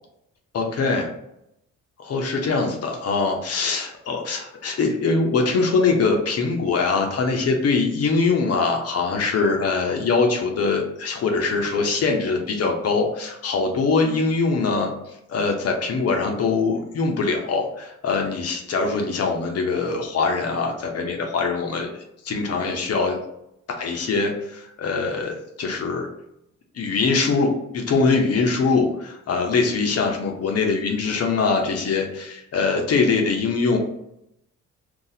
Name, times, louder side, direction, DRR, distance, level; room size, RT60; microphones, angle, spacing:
voice 1, 0.5-1.1 2.0-14.9 15.3-21.9 22.2-23.2 23.8-26.1 26.7-33.8, left 4 dB, 55° left, 2 dB, 0.8 m, -22 dB
2.7 x 2.4 x 3.9 m, 0.80 s
cardioid pair, 90°, 30 cm